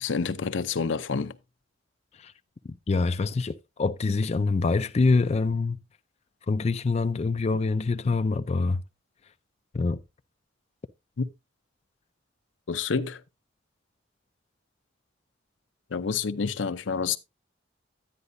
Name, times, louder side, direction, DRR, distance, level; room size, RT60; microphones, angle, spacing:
voice 1, 0.0-1.4 11.2-11.3 12.7-13.2 15.9-17.2, left 5 dB, 75° left, 0.6 m, -28 dB
voice 2, 2.9-5.8 6.5-8.8 9.7-10.0, left 3 dB, 35° left, 0.4 m, -25 dB
10.5 x 9.7 x 2.6 m
head